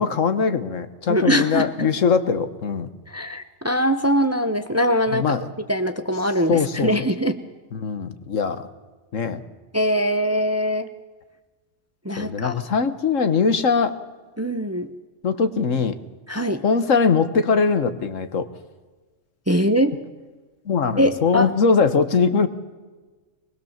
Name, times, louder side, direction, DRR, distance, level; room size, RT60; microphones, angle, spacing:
voice 1, 0.0-2.9 5.1-5.4 6.5-6.9 7.7-8.7 9.1-9.4 12.2-14.0 15.2-16.0 16.6-18.5 20.6-22.5, left 5 dB, 80° left, 10 dB, 1.6 m, -21 dB
voice 2, 1.1-1.9 3.1-5.3 5.7-7.4 9.7-10.9 12.0-12.5 14.4-14.9 16.3-16.6 19.5-20.0 21.0-21.5, equal, 15° right, 10 dB, 0.8 m, -22 dB
22.5 x 20.5 x 7.3 m, 1.3 s
omnidirectional pair, 1.3 m